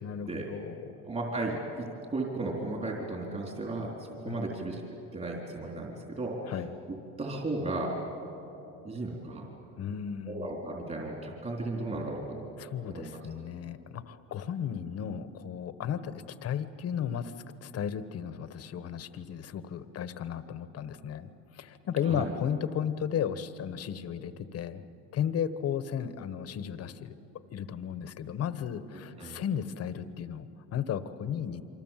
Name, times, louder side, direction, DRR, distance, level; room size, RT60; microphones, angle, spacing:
voice 1, 0.0-0.8 4.3-4.6 6.5-6.7 9.8-10.5 12.6-17.3 17.6-24.8 25.1-27.1 27.5-31.6, left 8 dB, 50° left, 12 dB, 1.2 m, -34 dB
voice 2, 1.0-4.8 5.1-6.4 6.9-8.0 8.8-9.5 10.3-12.4 12.9-13.2 22.0-22.3 28.9-29.4, right 2 dB, 25° right, -1 dB, 3.9 m, -35 dB
27.5 x 25.0 x 7.5 m, 2.9 s
cardioid pair, 120°, 32 cm